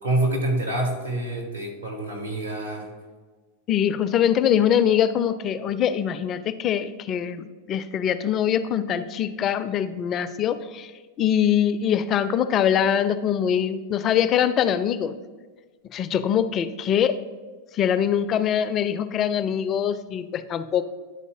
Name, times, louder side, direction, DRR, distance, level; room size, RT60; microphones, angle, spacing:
voice 1, 0.0-2.9, right 1 dB, 85° right, 0 dB, 1.7 m, -26 dB
voice 2, 3.7-10.9 11.2-15.2 15.9-17.2 17.7-20.8, left 9 dB, 30° left, 12 dB, 0.3 m, -23 dB
10.5 x 4.0 x 3.6 m, 1.4 s
figure-of-eight pair, 90°, 0 cm